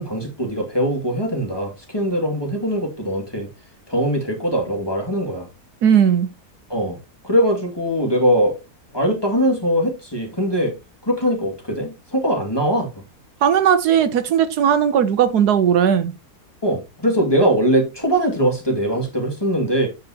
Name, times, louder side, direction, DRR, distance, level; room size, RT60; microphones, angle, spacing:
voice 1, 0.0-3.5 3.9-5.5 6.7-7.0 7.2-8.6 8.9-10.7 11.0-13.0 16.6-19.9, equal, 15° left, 2.3 m, -21 dB
voice 2, 5.8-6.3 13.4-16.1, right 8 dB, 80° right, 1.4 m, -17 dB
8.9 x 6.7 x 2.9 m
omnidirectional pair, 1.7 m